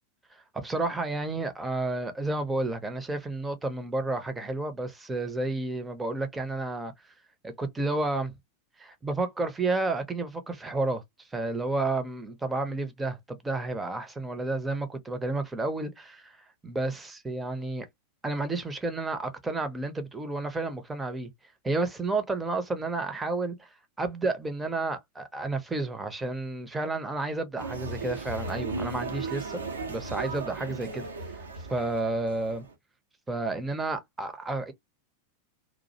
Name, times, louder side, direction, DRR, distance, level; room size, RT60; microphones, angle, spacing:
voice 1, 0.3-6.9 7.4-8.3 8.8-16.4 16.6-17.9 18.2-21.3 21.6-23.7 24.0-29.6 29.9-31.1 31.7-32.6 33.3-34.7, right 2 dB, 10° right, 0.6 m, -31 dB
sound 1, 27.6-32.7, right 3 dB, 70° right, 0.6 m, -36 dB
2.4 x 2.0 x 2.6 m
figure-of-eight pair, 90°, 0 cm